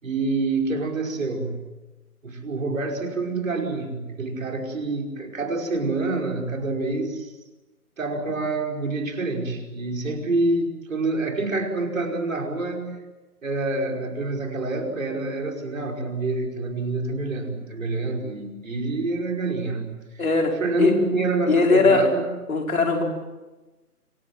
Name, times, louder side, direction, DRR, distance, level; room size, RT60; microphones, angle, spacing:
voice 1, 0.0-1.7 2.2-7.3 8.0-12.9 13.4-20.0 20.6-22.2, right 3 dB, 55° right, 2 dB, 5.3 m, -27 dB
voice 2, 20.2-20.9 21.5-22.1 22.5-23.0, left 3 dB, 60° left, 2 dB, 5.4 m, -19 dB
26.0 x 25.5 x 7.8 m, 1.2 s
figure-of-eight pair, 150°, 47 cm